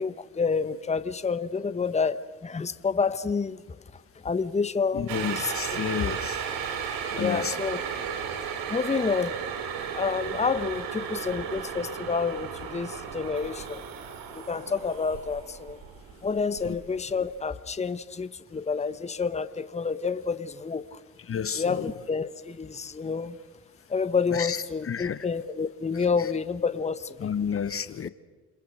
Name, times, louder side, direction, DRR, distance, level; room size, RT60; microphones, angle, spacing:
voice 1, 0.0-3.6 4.2-5.5 7.1-7.8 8.7-9.3 9.9-13.8 14.3-15.8 16.2-21.0 21.6-23.4 23.9-27.3, left 5 dB, 20° left, 1.1 m, -29 dB
voice 2, 4.9-6.4 6.8-6.9 7.1-7.6 16.6-16.7 21.3-21.9 24.3-25.2 26.2-26.3 27.2-28.1, left 7 dB, 40° left, 1.1 m, -31 dB
sound 1, 5.1-17.2 17.5-17.6, right 7 dB, 70° right, 3.1 m, -35 dB
30.0 x 21.0 x 6.5 m
hypercardioid pair, 60°, 35 cm